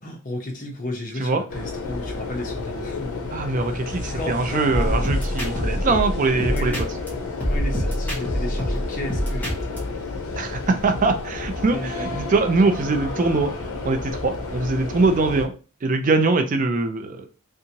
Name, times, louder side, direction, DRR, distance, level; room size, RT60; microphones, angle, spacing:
voice 1, 0.0-3.2 4.1-5.1 6.5-6.9 7.5-10.1 11.7-12.2, left 1 dB, 35° left, 2 dB, 0.8 m, -33 dB
sound 1, 1.5-15.5, left 3 dB, 85° left, 0.7 m, -31 dB
voice 2, 3.3-6.7 10.4-13.5 13.8-15.5 15.8-17.3, right 3 dB, 35° right, 7 dB, 0.3 m, -22 dB
sound 2, 4.7-7.1 7.4-9.8, equal, 10° left, 1.1 m, -25 dB
3.4 x 2.8 x 2.8 m, 0.34 s
head